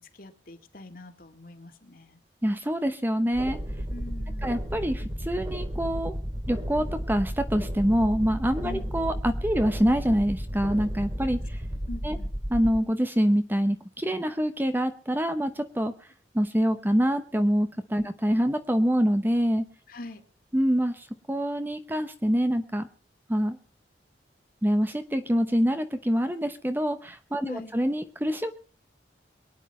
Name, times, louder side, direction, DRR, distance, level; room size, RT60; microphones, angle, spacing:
voice 1, 0.0-2.2 3.9-4.5 8.6-8.8 11.9-12.3 18.0-18.1 19.9-20.2 27.4-27.8, left 2 dB, 50° left, 6 dB, 2.1 m, -42 dB
voice 2, 2.4-3.6 4.4-6.1 6.5-11.6 12.0-12.2 12.5-15.9 16.3-19.7 20.5-22.9 23.3-23.6 24.6-28.5, equal, 10° right, 9 dB, 0.8 m, -25 dB
sound 1, 3.3-12.8, equal, 25° right, 2.8 m, -33 dB
23.0 x 9.8 x 4.3 m, 0.41 s
head